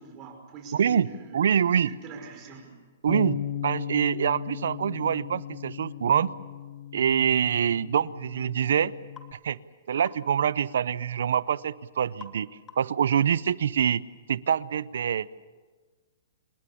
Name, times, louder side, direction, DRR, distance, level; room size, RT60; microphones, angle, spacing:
voice 1, 0.0-1.4 1.6-2.7, right 4 dB, 25° right, 3 dB, 5.6 m, -44 dB
voice 2, 0.7-1.1 1.3-1.9 3.0-6.3 6.9-8.9 9.4-9.6 9.9-12.5 12.8-14.0 14.3-15.3, right 8 dB, 75° right, 19 dB, 0.7 m, -25 dB
Bass guitar, 3.1-9.3, left 10 dB, 50° left, 1.0 m, -37 dB
sound 1, 9.2-9.3 10.1-10.3 12.2-12.4 12.7-13.0, left 6 dB, 15° left, 1.5 m, -46 dB
27.5 x 20.0 x 7.1 m, 1.4 s
hypercardioid pair, 155°, 0 cm